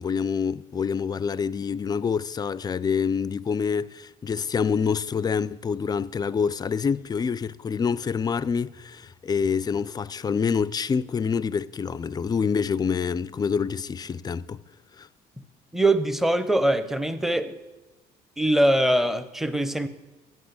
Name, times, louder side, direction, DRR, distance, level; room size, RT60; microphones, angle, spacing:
voice 1, 0.0-14.6 15.0-15.1, left 6 dB, 25° left, 0.3 m, -26 dB
voice 2, 15.7-17.5 18.4-19.9, right 1 dB, ahead, 0.7 m, -22 dB
9.2 x 8.0 x 7.9 m
cardioid pair, 110°, 17 cm